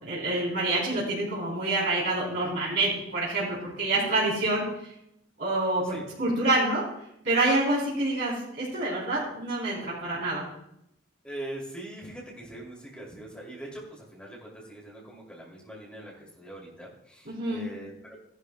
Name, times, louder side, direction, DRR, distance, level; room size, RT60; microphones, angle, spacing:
voice 1, 0.0-4.6 5.4-6.8 7.2-10.5 17.3-17.6, right 2 dB, 55° right, -7 dB, 3.8 m, -27 dB
voice 2, 11.2-18.2, right 1 dB, 5° left, -4 dB, 2.8 m, -42 dB
14.0 x 11.5 x 2.3 m, 0.80 s
head